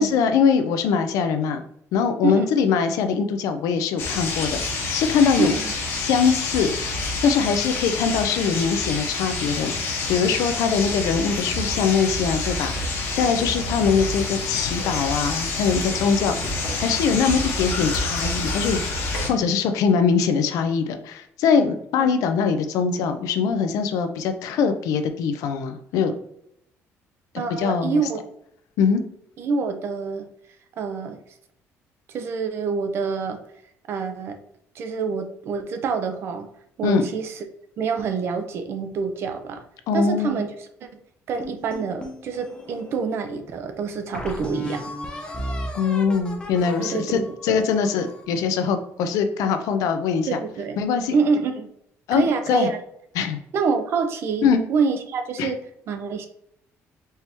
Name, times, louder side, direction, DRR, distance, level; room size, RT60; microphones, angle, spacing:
voice 1, 0.0-1.6 1.9-5.5 5.9-6.8 7.2-16.3 16.8-18.8 19.2-26.1 27.6-28.0 28.8-29.0 36.8-37.1 39.9-40.4 45.7-50.4 50.8-51.2 52.1-52.7 53.1-53.4 54.4-54.6 55.4-55.5, left 6 dB, 90° left, 8 dB, 0.6 m, -22 dB
voice 2, 2.2-2.7 5.4-5.7 22.0-22.1 27.4-28.2 29.4-30.3 30.8-31.2 32.1-33.4 33.9-34.4 34.8-36.5 36.8-37.4 37.8-39.6 39.9-40.5 40.8-40.9 41.3-44.9 46.8-47.0 47.5-47.7 50.3-50.8 51.1-51.7 52.1-52.8 53.5-55.6 55.9-56.3, right 5 dB, 45° right, 7 dB, 0.6 m, -26 dB
sound 1, 4.0-19.3, left 3 dB, 50° left, 1.0 m, -28 dB
sound 2, 41.4-43.0 43.5-43.6 44.1-48.3, left 1 dB, 15° left, 0.6 m, -35 dB
4.5 x 2.9 x 3.4 m, 0.73 s
cardioid pair, 175°, 6 cm